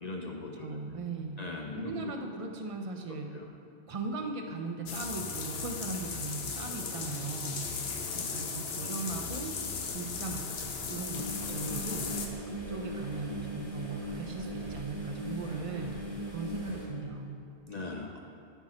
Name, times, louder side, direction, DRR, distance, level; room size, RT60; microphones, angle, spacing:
voice 1, 0.0-0.8 1.4-2.1 3.3-3.5 17.7-18.2, left 3 dB, 45° left, 1 dB, 0.6 m, -39 dB
voice 2, 0.6-1.4 1.7-3.3 3.9-7.7 8.1-9.6 9.9-12.1 12.5-16.0 16.3-17.4, right 3 dB, 35° right, 3 dB, 0.6 m, -38 dB
sound 1, 4.9-12.3, left 5 dB, 65° left, 1.0 m, -37 dB
sound 2, 11.1-16.8, right 1 dB, 20° left, 2.1 m, -39 dB
12.5 x 4.8 x 4.2 m, 2.5 s
omnidirectional pair, 1.2 m